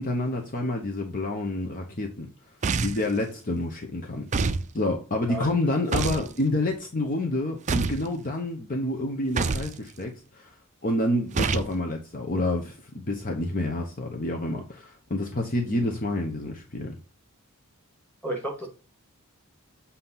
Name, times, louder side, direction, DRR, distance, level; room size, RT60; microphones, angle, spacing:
voice 1, 0.0-2.3 2.8-10.5 10.8-17.0, left 1 dB, 40° left, 0.9 m, -28 dB
sound 1, 2.6-3.1 4.3-4.7 5.9-6.3 7.7-8.1 9.4-9.7 11.3-11.7, right 4 dB, 35° right, 0.4 m, -26 dB
voice 2, 5.8-6.3 18.2-18.7, right 1 dB, 5° left, 2.0 m, -33 dB
7.5 x 2.8 x 5.6 m
head